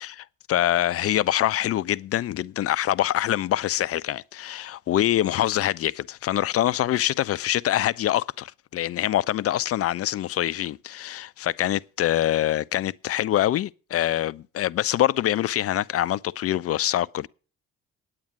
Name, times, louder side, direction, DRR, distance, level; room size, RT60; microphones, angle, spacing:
voice 1, 0.0-17.3, left 13 dB, 40° left, 0.5 m, -25 dB
9.4 x 8.7 x 7.7 m
figure-of-eight pair, 45°, 39 cm